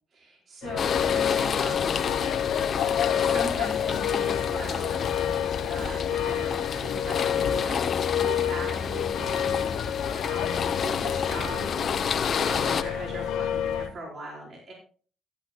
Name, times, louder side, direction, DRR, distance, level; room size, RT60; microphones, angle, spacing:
voice 1, 0.1-2.0 3.1-5.1 5.7-9.7 10.2-11.7 12.4-14.7, right 2 dB, 55° right, -2 dB, 4.8 m, -39 dB
sound 1, 0.6-13.9, left 9 dB, 90° left, 1.0 m, -29 dB
sound 2, 0.8-12.8, left 6 dB, 55° left, 1.0 m, -30 dB
15.5 x 11.0 x 2.3 m, 0.41 s
cardioid pair, 90°, 0 cm